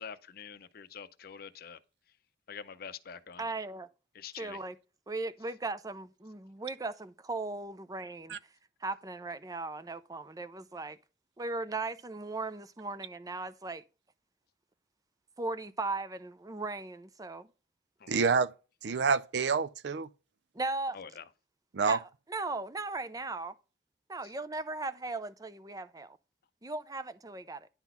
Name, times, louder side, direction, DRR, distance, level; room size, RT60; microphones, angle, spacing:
voice 1, 0.0-1.8 2.5-3.4 4.1-4.6 18.0-18.2 20.9-21.2, left 7 dB, 55° left, 0.6 m, -45 dB
voice 2, 3.4-3.9 4.3-4.8 5.1-8.4 8.8-11.0 11.4-13.8 15.4-17.5 20.5-21.0 21.9-23.5 24.1-26.2 26.6-27.7, right 3 dB, 20° right, 0.5 m, -37 dB
voice 3, 18.1-18.5 18.8-20.1 21.7-22.0, right 5 dB, 65° right, 0.5 m, -27 dB
10.5 x 4.0 x 5.5 m
head